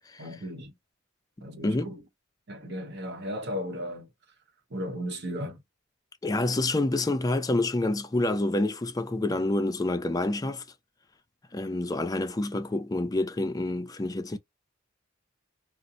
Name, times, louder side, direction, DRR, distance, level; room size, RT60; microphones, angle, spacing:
voice 1, 0.2-0.7 1.4-2.0 2.5-4.1 4.7-5.6, equal, 55° right, 0.8 m, -35 dB
voice 2, 6.2-10.6 11.5-14.4, left 2 dB, 20° left, 0.4 m, -27 dB
2.7 x 2.0 x 3.7 m
head